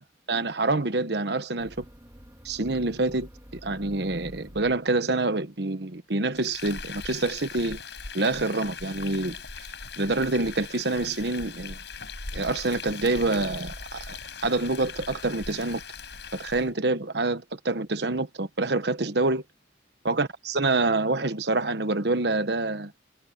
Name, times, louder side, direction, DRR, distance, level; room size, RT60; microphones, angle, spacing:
voice 1, 0.3-1.8 2.4-3.3 3.6-7.8 8.1-9.4 10.0-11.8 12.3-14.1 14.4-15.8 16.4-19.4 20.0-22.9, right 2 dB, 60° right, 1.2 m, -26 dB
sound 1, 1.6-5.3, equal, 15° right, 2.7 m, -48 dB
Frying (food), 6.3-16.7, left 5 dB, 65° left, 7.1 m, -40 dB
head